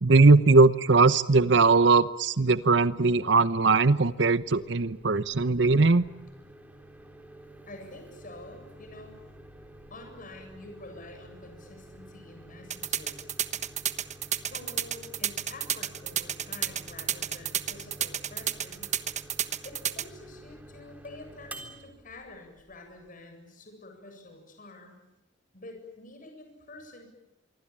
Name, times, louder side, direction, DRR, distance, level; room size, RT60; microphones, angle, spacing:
voice 1, 0.0-6.0, right 3 dB, 65° right, 14 dB, 0.9 m, -20 dB
Microwave oven, 4.4-23.1, right 1 dB, 10° right, 3.6 m, -50 dB
voice 2, 7.7-9.2 9.9-13.3 14.5-19.0 19.6-25.0 25.5-27.1, left 2 dB, 45° left, 4 dB, 7.8 m, -47 dB
sound 1, 12.7-20.0, right 10 dB, 40° right, 1.3 m, -30 dB
26.5 x 24.0 x 8.9 m, 0.97 s
head